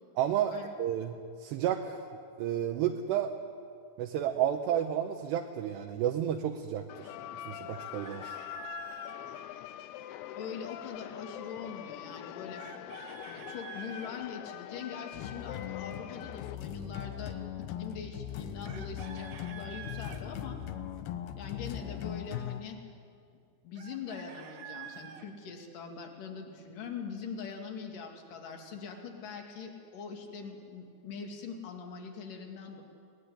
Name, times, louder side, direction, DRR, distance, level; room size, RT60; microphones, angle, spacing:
voice 1, 0.2-2.0 2.4-3.3 4.0-7.1 7.5-8.4, right 10 dB, 75° right, 3 dB, 3.0 m, -31 dB
sound 1, 6.9-16.6, left 12 dB, 85° left, 3.1 m, -43 dB
Chicken rooster, 7.7-9.2 12.6-14.1 18.6-20.2 23.8-25.3, right 8 dB, 55° right, 2.5 m, -47 dB
voice 2, 10.4-12.6 13.3-20.6 21.4-22.8 23.6-32.8, left 6 dB, 55° left, 2 dB, 3.6 m, -42 dB
sound 2, 15.1-22.6, left 10 dB, 70° left, 2.4 m, -39 dB
23.0 x 20.0 x 10.0 m, 2.5 s
omnidirectional pair, 5.1 m